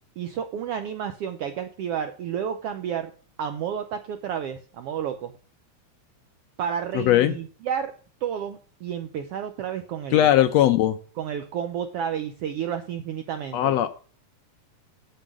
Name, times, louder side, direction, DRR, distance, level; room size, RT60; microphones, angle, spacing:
voice 1, 0.2-3.1 3.4-5.3 6.6-7.9 8.2-10.3 11.2-13.7, right 8 dB, 85° right, 8 dB, 1.3 m, -31 dB
voice 2, 6.9-7.3 10.1-11.0 13.5-13.9, left 12 dB, 75° left, 10 dB, 1.6 m, -19 dB
7.7 x 7.6 x 6.2 m, 0.41 s
omnidirectional pair, 3.4 m